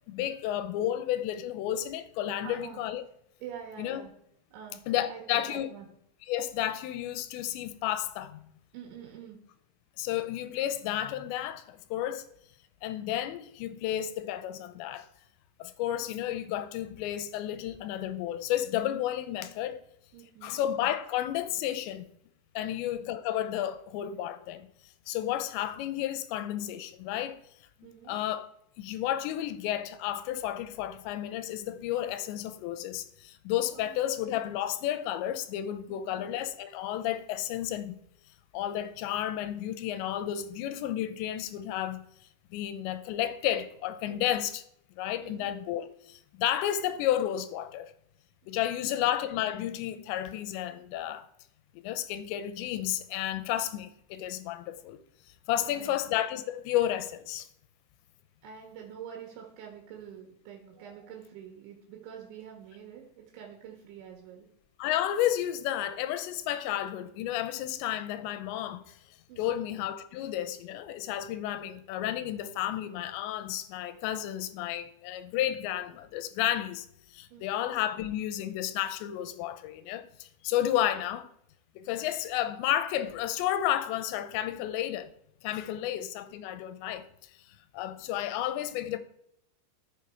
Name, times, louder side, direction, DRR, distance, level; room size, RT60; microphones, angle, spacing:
voice 1, 0.1-3.0 3.8-4.0 4.9-5.7 6.3-8.4 10.0-12.3 12.8-15.1 15.6-19.8 20.4-22.0 22.6-24.7 25.1-27.4 28.1-28.5 28.8-38.0 38.5-42.0 42.5-44.6 45.0-47.9 48.5-51.3 51.7-55.0 55.5-57.5 64.8-69.0 69.4-76.9 77.1-81.3 81.8-85.1 85.4-87.1 87.7-89.0, left 12 dB, 90° left, 2.9 m, -32 dB
voice 2, 2.4-2.8 3.4-4.1 4.5-5.9 8.7-9.4 20.1-20.6 22.6-22.8 27.8-28.2 33.7-34.1 35.9-36.3 44.1-44.3 45.2-45.5 48.6-48.7 49.0-49.1 55.6-56.0 58.4-64.5 69.3-69.7 77.3-77.7 85.8-85.9, right 8 dB, 90° right, 4.0 m, -46 dB
13.5 x 7.3 x 4.6 m
omnidirectional pair, 5.2 m